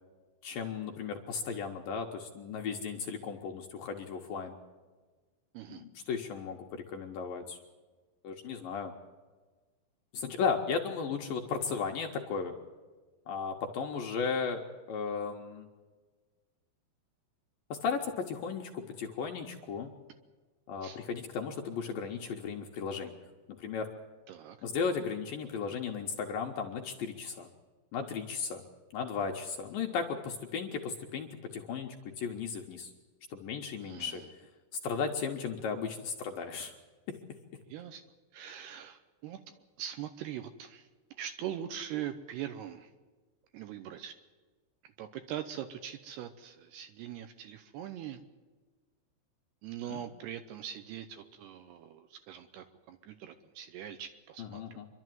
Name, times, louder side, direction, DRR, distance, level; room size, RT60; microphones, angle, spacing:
voice 1, 0.4-4.5 5.7-7.6 8.2-8.9 10.1-12.5 13.3-14.6 14.9-15.7 17.7-19.9 20.7-23.2 23.5-23.9 24.6-27.5 27.9-28.6 28.9-32.9 33.3-34.2 34.8-36.7 49.9-50.0 54.4-54.9, left 5 dB, 70° left, 1 dB, 2.4 m, -35 dB
voice 2, 33.8-34.3 37.7-38.0 38.3-39.4 39.8-40.9 41.2-42.9 43.5-44.1 44.8-48.2 49.6-54.8, right 10 dB, 75° right, 9 dB, 2.6 m, -42 dB
26.5 x 12.0 x 9.3 m, 1.3 s
omnidirectional pair, 5.3 m